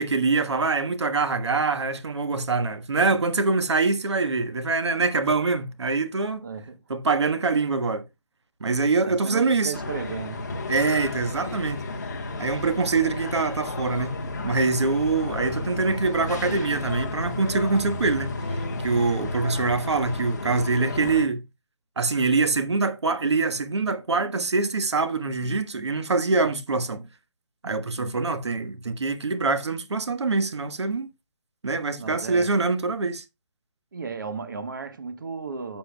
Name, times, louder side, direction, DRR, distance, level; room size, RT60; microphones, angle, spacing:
voice 1, 0.0-6.5 6.9-8.0 8.6-9.7 10.7-11.8 12.4-21.4 22.0-27.1 27.6-31.1 31.6-33.2, right 3 dB, 70° right, 1.4 m, -24 dB
voice 2, 6.4-6.8 9.0-10.7 28.0-28.2 32.0-32.5 33.9-35.8, right 5 dB, 45° right, 1.1 m, -35 dB
sound 1, 9.7-21.3, left 2 dB, 40° left, 1.2 m, -32 dB
13.0 x 6.8 x 2.3 m
hypercardioid pair, 180°, 15 cm